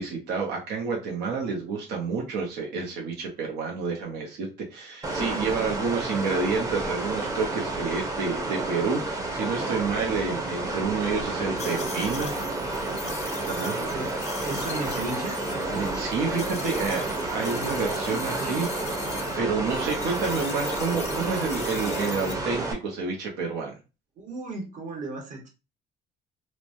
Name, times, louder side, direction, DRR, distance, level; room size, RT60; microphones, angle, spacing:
voice 1, 0.0-12.3 13.5-13.8 15.7-18.7 19.4-23.8, right 4 dB, 85° right, 0 dB, 0.7 m, -29 dB
sound 1, 5.0-22.7, right 2 dB, 20° right, 0.6 m, -30 dB
sound 2, 11.6-19.4 19.7-22.3, left 6 dB, 40° left, 0.4 m, -41 dB
voice 2, 14.4-15.4 17.5-17.8 18.0-18.6 24.2-25.5, right 2 dB, 50° right, 1 dB, 1.0 m, -35 dB
3.0 x 2.1 x 2.5 m, 0.30 s
cardioid pair, 110°, 17 cm